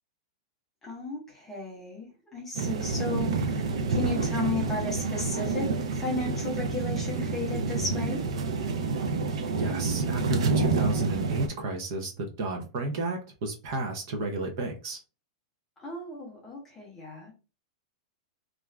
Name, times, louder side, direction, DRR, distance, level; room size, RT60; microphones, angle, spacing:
voice 1, 0.8-8.2 15.8-17.3, left 3 dB, 10° left, -2 dB, 0.7 m, -34 dB
sound 1, 2.5-11.5, right 4 dB, 85° right, 0.5 m, -28 dB
voice 2, 9.5-15.0, right 2 dB, 35° right, 3 dB, 0.5 m, -32 dB
2.4 x 2.3 x 3.1 m, 0.32 s
supercardioid pair, 180°, 3 cm